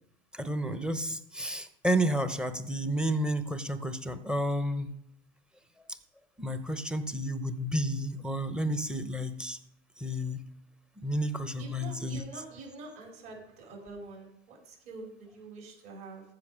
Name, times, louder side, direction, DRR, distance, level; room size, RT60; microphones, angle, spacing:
voice 1, 0.3-4.9 6.4-9.6 10.0-10.4 11.0-12.2, equal, 5° right, 10 dB, 0.7 m, -31 dB
voice 2, 11.6-16.2, right 3 dB, 55° right, -1 dB, 4.7 m, -46 dB
14.5 x 5.3 x 5.0 m, 0.77 s
hypercardioid pair, 100°, 31 cm